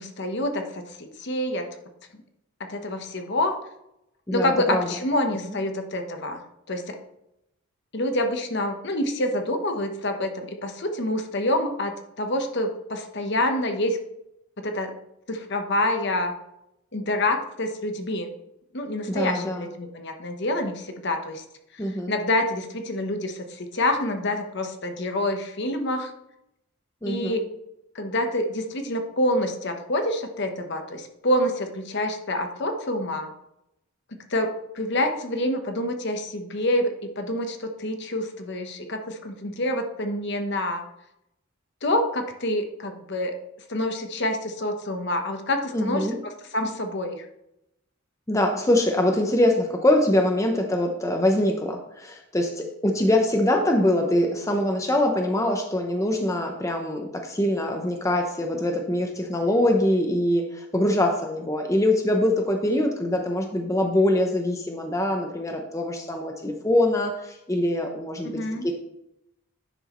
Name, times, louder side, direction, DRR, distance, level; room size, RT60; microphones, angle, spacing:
voice 1, 0.0-1.7 2.7-3.5 4.3-6.4 6.7-7.0 7.9-14.0 14.6-14.9 15.3-16.3 16.9-18.3 18.7-21.4 22.1-26.1 27.1-27.4 27.9-33.3 34.3-40.8 41.8-43.3 43.7-47.2 68.2-68.7, left 1 dB, 55° left, 5 dB, 0.9 m, -27 dB
voice 2, 4.3-4.9 19.1-19.7 21.8-22.1 27.0-27.4 45.7-46.1 48.3-68.4 68.6-68.7, left 1 dB, 15° left, 3 dB, 0.7 m, -23 dB
10.0 x 6.2 x 3.1 m, 0.83 s
head